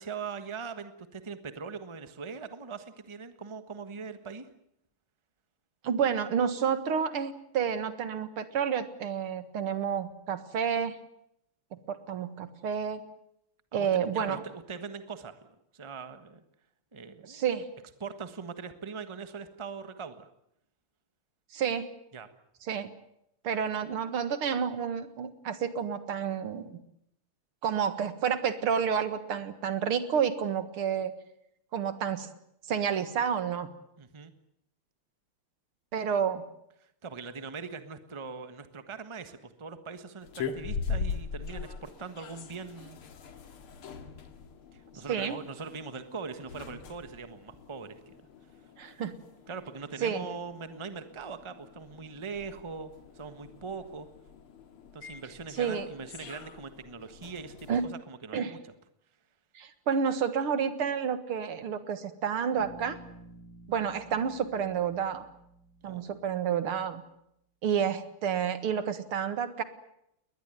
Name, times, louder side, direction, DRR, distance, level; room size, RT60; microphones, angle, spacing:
voice 1, 0.0-4.5 13.7-13.9 14.1-16.4 16.9-17.4 18.0-20.3 22.1-22.3 34.0-34.3 36.8-43.0 44.7-48.2 49.5-54.1 54.9-58.6 65.8-66.2, right 5 dB, 15° right, 10 dB, 1.2 m, -41 dB
voice 2, 5.8-11.0 11.7-13.0 13.7-14.4 17.2-17.7 21.5-21.9 22.7-22.9 23.4-26.8 27.6-31.1 31.7-32.3 32.7-33.7 35.9-36.4 45.1-45.4 48.8-49.1 50.0-50.3 55.6-55.9 57.7-57.8 58.3-58.5 59.6-63.0 63.7-65.3 65.8-67.0 67.6-69.6, right 7 dB, 75° right, 11 dB, 2.5 m, -30 dB
sound 1, 40.2-57.9, left 5 dB, 75° left, 2.7 m, -42 dB
Bass guitar, 62.6-66.6, right 1 dB, 40° right, 7.2 m, -52 dB
21.5 x 20.0 x 9.1 m, 0.76 s
omnidirectional pair, 2.4 m